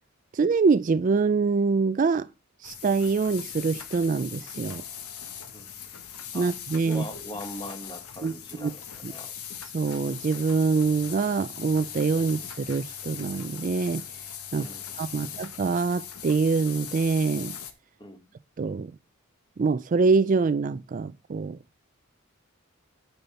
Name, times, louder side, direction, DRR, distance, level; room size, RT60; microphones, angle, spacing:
voice 1, 0.3-2.3 2.6-4.8 6.3-7.0 8.2-8.3 8.6-8.7 9.0-9.1 9.7-14.0 14.5-14.7 15.0-17.5 18.6-18.9 19.6-21.6, right 4 dB, 35° right, 0.3 m, -25 dB
sound 1, 2.6-17.7, left 8 dB, 90° left, 1.2 m, -40 dB
voice 2, 6.8-9.3 14.6-15.4 18.0-18.3, left 1 dB, 20° left, 1.4 m, -41 dB
sound 2, 7.1-9.1, left 1 dB, 65° left, 3.3 m, -53 dB
8.9 x 5.6 x 4.2 m
head